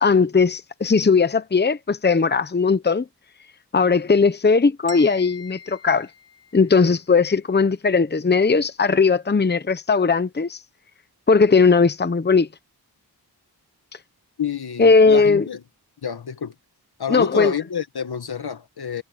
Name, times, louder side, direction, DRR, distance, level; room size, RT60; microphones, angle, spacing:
voice 1, 0.0-3.0 3.7-6.1 6.5-10.6 11.3-12.5 14.8-15.4 17.1-17.5, left 4 dB, 25° left, 0.9 m, -18 dB
sound 1, 4.9-6.9, left 1 dB, 40° right, 2.9 m, -42 dB
voice 2, 14.4-15.6 16.0-16.5 17.0-19.0, left 7 dB, 70° left, 1.6 m, -28 dB
wide cardioid pair, 100°, 39 cm